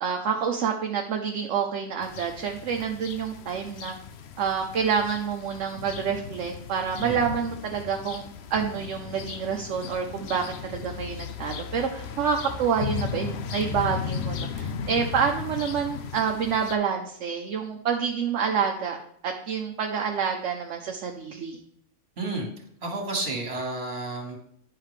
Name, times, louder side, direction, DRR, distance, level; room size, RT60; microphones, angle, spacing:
voice 1, 0.0-3.9 4.4-19.0 19.2-21.6, right 6 dB, 70° right, 2 dB, 1.1 m, -28 dB
sound 1, 2.0-16.8, left 6 dB, 65° left, 0.8 m, -36 dB
voice 2, 22.2-22.5 22.8-24.4, right 2 dB, 55° right, 1 dB, 1.9 m, -31 dB
9.9 x 5.7 x 3.2 m, 0.70 s
omnidirectional pair, 1.3 m